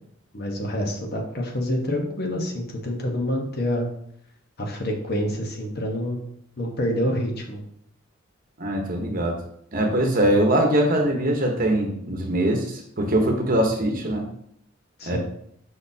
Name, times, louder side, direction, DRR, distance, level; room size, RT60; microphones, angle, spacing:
voice 1, 0.3-3.9 4.6-6.2 6.6-7.6 15.0-15.2, left 1 dB, 50° left, 1 dB, 1.1 m, -27 dB
voice 2, 8.6-9.4 9.7-14.2 15.1-15.2, right 1 dB, 40° right, 2 dB, 1.0 m, -22 dB
6.3 x 5.7 x 2.8 m, 0.70 s
head